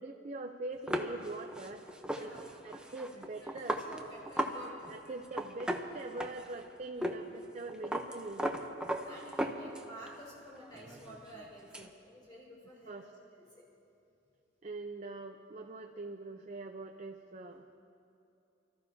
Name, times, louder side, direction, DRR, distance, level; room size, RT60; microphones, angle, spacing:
voice 1, 0.0-1.8 2.2-2.3 2.6-3.9 4.9-8.6 11.8-11.9 12.9-13.1 14.6-17.6, right 2 dB, 40° right, 4 dB, 0.6 m, -43 dB
sound 1, 0.9-4.6 4.8-5.0 5.2-6.6 7.0-7.2 7.4-10.1 10.5-11.9, right 1 dB, 5° right, 0.7 m, -37 dB
voice 2, 2.1-2.9 3.4-5.1 7.1-7.2 9.0-13.1 13.5-13.6, equal, 25° left, -6 dB, 3.1 m, -51 dB
29.5 x 14.0 x 2.8 m, 2.7 s
head